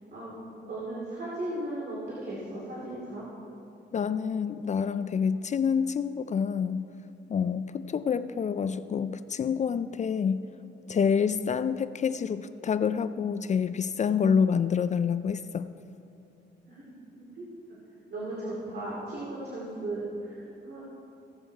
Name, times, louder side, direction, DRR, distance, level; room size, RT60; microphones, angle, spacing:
voice 1, 0.1-3.3 16.7-17.8 18.1-20.8, right 1 dB, 55° right, -6 dB, 2.5 m, -37 dB
voice 2, 3.9-6.9 7.3-10.4 10.9-15.7, left 6 dB, 40° left, 13 dB, 0.4 m, -27 dB
16.5 x 7.7 x 4.6 m, 2.8 s
cardioid pair, 105°, 20 cm